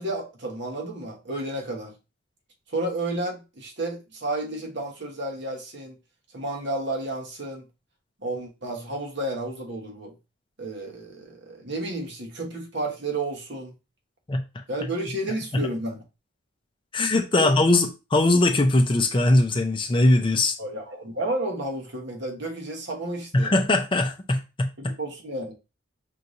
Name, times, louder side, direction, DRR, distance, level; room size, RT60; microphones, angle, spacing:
voice 1, 0.0-1.9 2.7-6.0 6.3-7.7 8.2-10.1 10.6-13.7 14.7-16.0 17.4-17.5 20.6-23.5 24.8-25.5, right 1 dB, 55° right, 1.2 m, -31 dB
voice 2, 14.3-14.6 16.9-20.6 23.3-24.9, left 2 dB, 25° left, 0.5 m, -21 dB
5.5 x 3.2 x 2.6 m
head